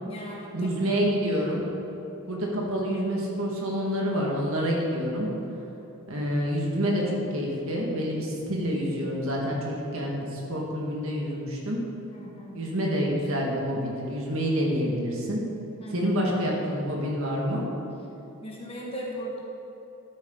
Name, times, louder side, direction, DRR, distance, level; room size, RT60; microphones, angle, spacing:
voice 1, 0.0-0.7 12.1-12.7 15.8-16.0 18.4-19.4, equal, 25° left, -3 dB, 1.6 m, -38 dB
voice 2, 0.5-1.6 2.3-5.3 6.1-11.8 12.5-15.4 15.9-17.7, equal, 70° right, -2 dB, 1.9 m, -27 dB
12.5 x 8.8 x 3.9 m, 3.0 s
head